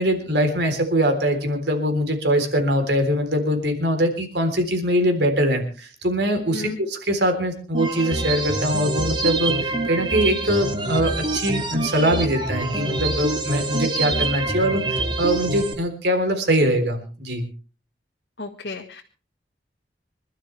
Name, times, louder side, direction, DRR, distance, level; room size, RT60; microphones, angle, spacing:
voice 1, 0.0-17.5, equal, 75° right, 5 dB, 3.7 m, -22 dB
voice 2, 6.4-6.8 18.4-19.0, left 3 dB, 75° left, 1 dB, 1.5 m, -33 dB
sound 1, 7.7-15.7, right 2 dB, 25° right, 2.0 m, -26 dB
25.5 x 12.5 x 3.4 m, 0.35 s
head